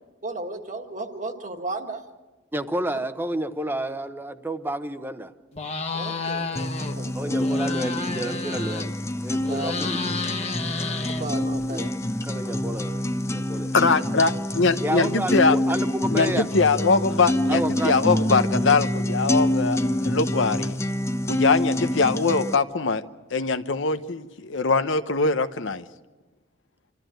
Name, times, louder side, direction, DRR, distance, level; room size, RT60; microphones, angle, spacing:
voice 1, 0.2-2.0 2.9-3.0 5.9-7.5 9.5-9.7 11.1-11.9, right 2 dB, 40° right, 4 dB, 1.7 m, -34 dB
voice 2, 2.5-5.3 7.1-8.9 9.2-10.2 11.7-11.9 12.2-13.7 14.8-16.5 17.5-17.9, right 1 dB, 10° right, 9 dB, 0.9 m, -30 dB
sound 1, 5.5-7.0 7.3-9.1 9.4-11.6, left 3 dB, 35° left, 1.5 m, -31 dB
sound 2, 6.6-22.6, left 1 dB, 15° left, 0.6 m, -26 dB
voice 3, 13.7-15.6 16.1-20.8 21.3-23.0 23.3-25.8, left 4 dB, 75° left, 10 dB, 0.9 m, -22 dB
26.5 x 13.5 x 9.1 m, 1.2 s
head